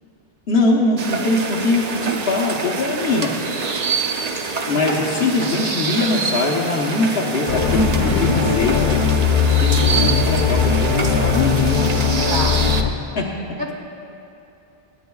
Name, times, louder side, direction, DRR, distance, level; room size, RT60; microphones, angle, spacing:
voice 1, 0.5-3.3 4.7-8.9 9.6-11.8 13.1-13.2, left 3 dB, 70° left, -3 dB, 1.3 m, -22 dB
sound 1, 1.0-12.8, right 5 dB, 45° right, 0.7 m, -26 dB
sound 2, 7.5-12.9, left 6 dB, 55° left, 0.9 m, -19 dB
voice 2, 7.7-8.3 12.3-12.6 13.6-13.7, equal, 25° right, 0 dB, 1.4 m, -24 dB
25.0 x 9.9 x 2.3 m, 2.9 s
omnidirectional pair, 1.1 m